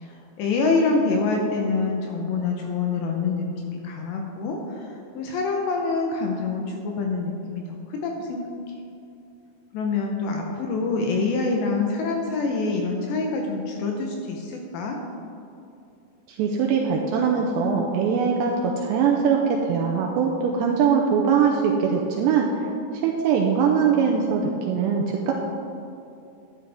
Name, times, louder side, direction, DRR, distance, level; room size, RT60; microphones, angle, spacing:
voice 1, 0.0-8.4 9.7-15.0, left 3 dB, 75° left, 2 dB, 2.7 m, -26 dB
voice 2, 16.3-22.5 23.0-25.3, right 6 dB, 85° right, 0 dB, 2.5 m, -22 dB
12.0 x 10.5 x 3.4 m, 2.7 s
omnidirectional pair, 5.7 m